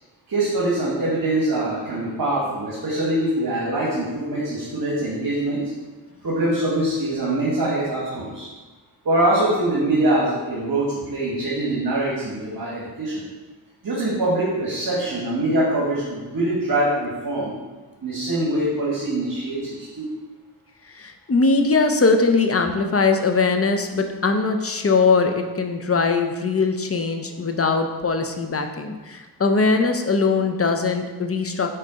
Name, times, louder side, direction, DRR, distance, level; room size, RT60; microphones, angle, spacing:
voice 1, 0.3-5.7 6.2-8.5 9.0-13.2 13.8-17.6 18.0-20.1, right 1 dB, 60° right, -6 dB, 1.7 m, -23 dB
voice 2, 20.9-31.7, left 4 dB, 35° left, 5 dB, 0.7 m, -21 dB
5.6 x 4.0 x 5.1 m, 1.3 s
wide cardioid pair, 80°, 41 cm